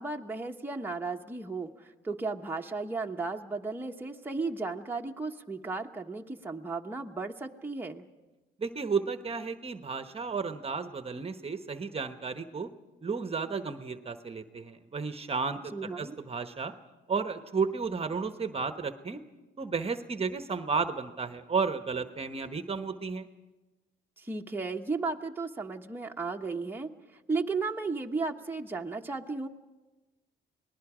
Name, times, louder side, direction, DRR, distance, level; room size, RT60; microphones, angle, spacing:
voice 1, 0.0-8.1 15.7-16.1 24.2-29.5, right 3 dB, 10° right, 1 dB, 1.1 m, -35 dB
voice 2, 8.6-12.7 13.0-16.7 17.1-19.2 19.6-23.3, right 5 dB, 30° right, 8 dB, 1.1 m, -33 dB
29.5 x 19.5 x 5.0 m, 1.1 s
cardioid pair, 90°, 20 cm